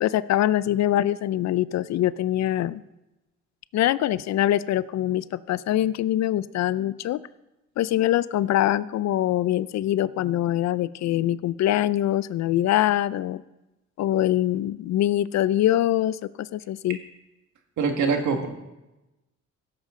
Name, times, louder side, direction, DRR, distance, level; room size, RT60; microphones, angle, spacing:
voice 1, 0.0-2.8 3.7-7.3 7.8-13.4 14.0-17.0, left 13 dB, 65° left, 18 dB, 0.4 m, -23 dB
voice 2, 17.8-18.5, right 5 dB, 75° right, 4 dB, 1.7 m, -23 dB
16.5 x 7.4 x 3.7 m, 0.99 s
cardioid pair, 90°, 30 cm